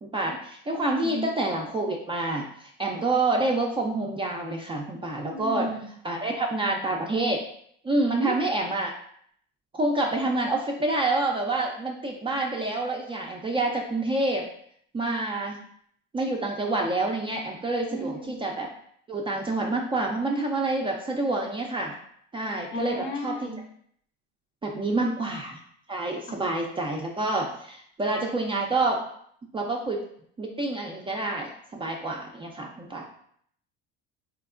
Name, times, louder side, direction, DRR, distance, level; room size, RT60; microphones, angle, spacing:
voice 1, 0.0-5.7 6.0-7.4 7.8-8.9 9.7-14.4 14.9-15.6 16.1-18.7 19.1-22.0 22.3-23.5 24.6-25.6 25.9-29.0 29.5-30.0 30.4-33.0, right 2 dB, 15° right, 0 dB, 0.4 m, -27 dB
voice 2, 1.0-1.3 5.3-5.9 8.1-8.3 17.9-18.5 22.7-23.7 24.8-25.3, left 1 dB, 35° left, 4 dB, 0.6 m, -33 dB
3.3 x 3.0 x 2.4 m, 0.65 s
supercardioid pair, 95°, 31 cm